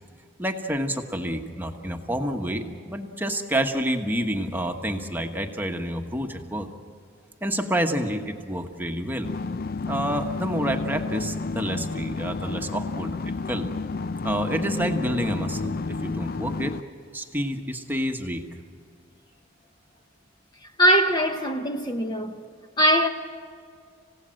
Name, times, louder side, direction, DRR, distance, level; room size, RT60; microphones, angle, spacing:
voice 1, 0.4-6.7 7.4-9.3 9.9-13.7 14.2-16.7 17.1-18.4, equal, 10° right, 1.2 m, -28 dB
sound 1, 9.2-16.8, left 3 dB, 50° left, 0.5 m, -31 dB
voice 2, 20.8-22.4 22.8-23.1, equal, 20° left, 0.9 m, -21 dB
27.5 x 16.5 x 7.6 m
head